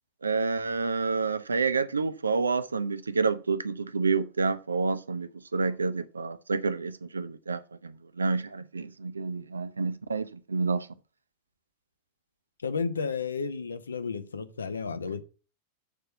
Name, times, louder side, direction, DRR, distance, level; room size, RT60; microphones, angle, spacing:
voice 1, 0.2-10.9, right 4 dB, 75° right, 0.6 m, -29 dB
voice 2, 12.6-15.2, left 5 dB, 75° left, 0.8 m, -32 dB
7.0 x 4.4 x 6.7 m
figure-of-eight pair, 90°, 0 cm